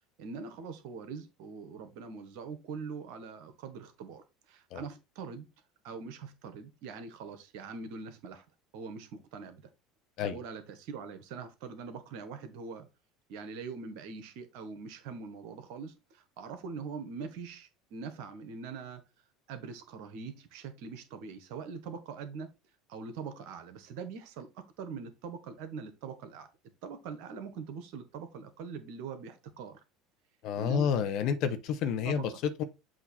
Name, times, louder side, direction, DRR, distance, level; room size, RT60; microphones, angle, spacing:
voice 1, 0.2-5.5 5.8-8.4 8.7-9.7 10.2-12.9 13.3-19.0 19.5-22.5 22.9-26.5 26.8-29.8 30.5-30.9 32.0-32.4, right 5 dB, 60° right, 1.3 m, -43 dB
voice 2, 30.4-32.6, left 7 dB, 55° left, 1.1 m, -30 dB
7.7 x 3.0 x 4.3 m
hypercardioid pair, 70°, 0 cm